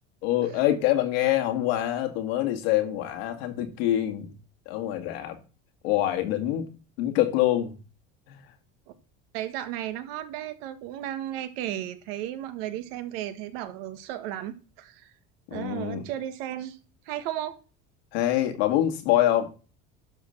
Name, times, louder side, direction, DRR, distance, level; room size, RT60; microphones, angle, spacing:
voice 1, 0.2-4.3 4.7-5.4 5.8-6.7 7.0-7.8 8.3-8.5 15.5-16.1 18.1-19.5, left 13 dB, 90° left, 2.1 m, -25 dB
voice 2, 9.3-15.1 15.5-16.8 17.0-17.6, right 12 dB, 85° right, 1.5 m, -34 dB
11.5 x 4.1 x 6.6 m
supercardioid pair, 120°, 29 cm